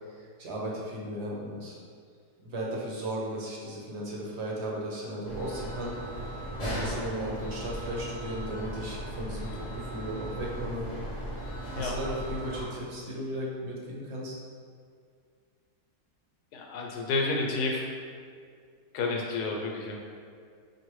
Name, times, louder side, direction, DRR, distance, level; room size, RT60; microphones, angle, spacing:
voice 1, 0.1-1.8 2.4-5.9 6.6-10.9 11.7-14.3, equal, 55° right, -4 dB, 0.9 m, -36 dB
sound 1, 5.2-12.7, right 1 dB, 20° left, 1.0 m, -37 dB
voice 2, 16.5-17.8 18.9-20.0, left 3 dB, 80° left, 0 dB, 1.2 m, -30 dB
5.3 x 2.6 x 3.1 m, 2.2 s
omnidirectional pair, 1.7 m